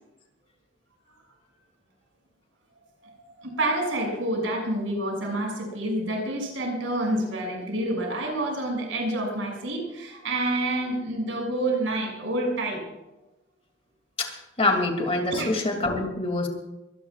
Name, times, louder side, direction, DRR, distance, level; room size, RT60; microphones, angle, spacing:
voice 1, 3.0-12.8 15.3-15.5, right 1 dB, 85° right, 0 dB, 6.5 m, -28 dB
voice 2, 14.2-16.5, left 2 dB, 30° left, 3 dB, 2.6 m, -25 dB
24.0 x 18.0 x 2.4 m, 0.99 s
head